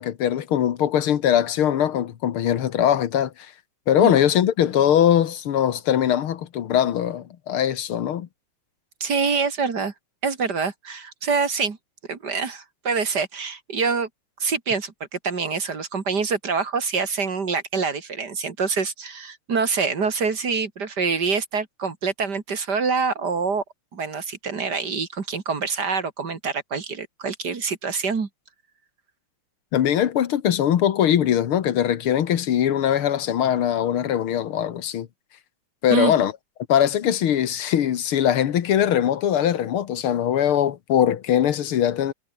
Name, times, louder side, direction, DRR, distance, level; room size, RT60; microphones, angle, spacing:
voice 1, 0.0-3.5 3.9-8.3 29.7-35.1 35.8-36.3 36.7-42.1, left 10 dB, 80° left, 2.2 m, -21 dB
voice 2, 9.0-9.9 10.2-11.8 12.1-14.1 14.4-23.6 23.9-28.3 35.9-36.1, right 5 dB, 50° right, 2.9 m, -25 dB
omnidirectional pair, 2.3 m